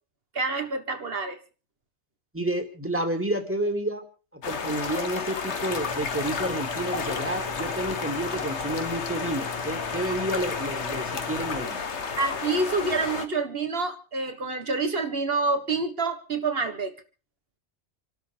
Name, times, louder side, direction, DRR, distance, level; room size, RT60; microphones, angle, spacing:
voice 1, 0.3-1.4 12.2-17.0, right 3 dB, 55° right, 7 dB, 1.9 m, -27 dB
voice 2, 2.3-4.0 4.3-11.8, right 1 dB, 10° right, 5 dB, 2.5 m, -30 dB
sound 1, 4.4-13.3, left 5 dB, 75° left, 1.6 m, -32 dB
sound 2, 5.7-11.6, left 2 dB, 40° left, 1.9 m, -42 dB
28.5 x 12.5 x 3.5 m, 0.37 s
omnidirectional pair, 1.2 m